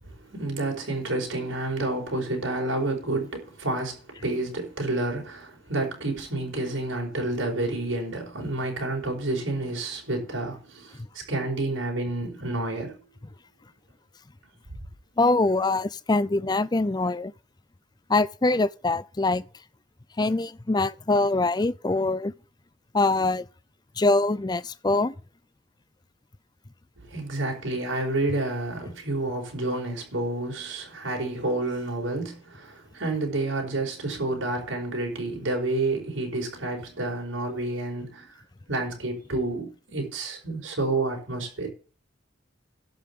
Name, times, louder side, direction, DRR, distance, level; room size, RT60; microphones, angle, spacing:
voice 1, 0.0-13.0 27.0-38.3 38.7-41.7, right 2 dB, 80° right, 4.9 m, -29 dB
voice 2, 15.2-17.3 18.1-19.4 20.2-22.3 22.9-23.5 24.0-25.1, left 2 dB, 20° left, 0.4 m, -23 dB
12.0 x 5.6 x 8.4 m
head